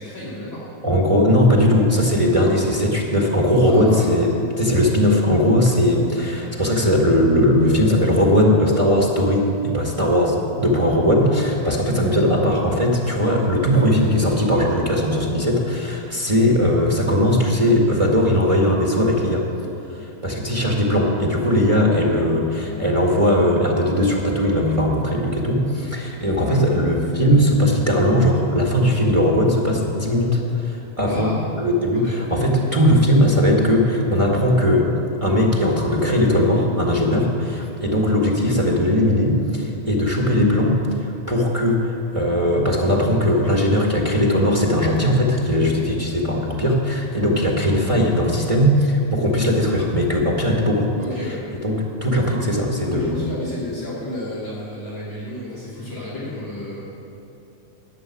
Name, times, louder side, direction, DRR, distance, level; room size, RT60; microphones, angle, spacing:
voice 1, 0.0-0.7 3.6-4.4 26.4-26.7 31.1-31.4 31.9-32.2 51.0-51.4 52.8-56.9, left 1 dB, 40° left, -7 dB, 3.4 m, -32 dB
voice 2, 0.8-19.4 19.9-34.9 35.2-50.9 51.6-53.3, equal, 50° right, -1 dB, 0.4 m, -19 dB
14.5 x 6.9 x 9.6 m, 2.8 s
omnidirectional pair, 3.4 m